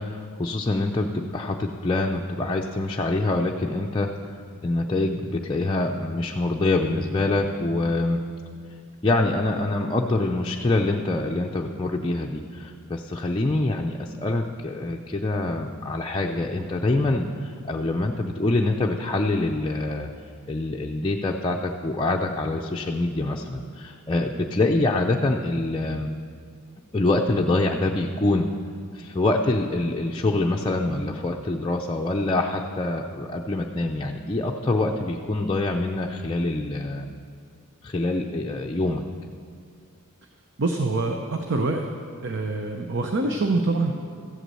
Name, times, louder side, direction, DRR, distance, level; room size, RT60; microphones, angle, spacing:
voice 1, 0.0-4.1 4.6-8.2 9.0-20.1 20.5-26.1 26.9-28.5 28.9-37.1 37.8-39.0, left 2 dB, 20° left, -1 dB, 0.5 m, -25 dB
voice 2, 40.6-41.9 42.2-43.9, right 3 dB, 55° right, 4 dB, 0.8 m, -25 dB
14.5 x 8.3 x 7.6 m, 2.2 s
head